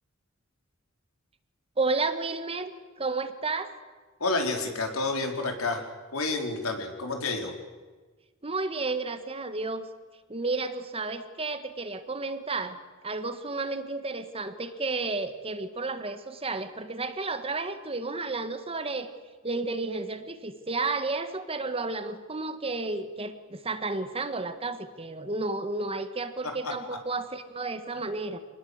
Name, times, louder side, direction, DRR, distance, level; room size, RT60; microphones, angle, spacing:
voice 1, 1.8-3.7 8.4-9.9 10.3-12.8 13.0-19.1 19.4-28.4, right 3 dB, 25° right, 10 dB, 1.6 m, -32 dB
voice 2, 4.2-5.8 6.1-7.5 26.6-26.7, left 3 dB, 90° left, 4 dB, 4.4 m, -29 dB
26.0 x 20.0 x 8.1 m, 1.4 s
head